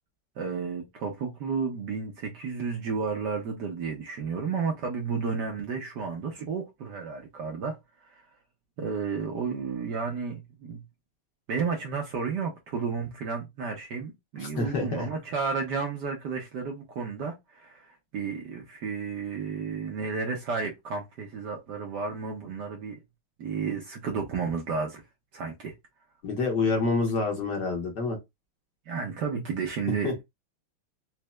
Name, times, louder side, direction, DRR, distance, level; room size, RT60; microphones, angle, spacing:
voice 1, 0.4-8.3 8.8-10.8 11.5-23.0 23.4-25.0 25.3-25.7 28.9-30.2, right 5 dB, 65° right, 1.1 m, -32 dB
voice 2, 14.4-15.1 26.2-28.2 30.0-30.1, left 3 dB, 55° left, 1.4 m, -27 dB
4.3 x 3.0 x 2.2 m
omnidirectional pair, 2.4 m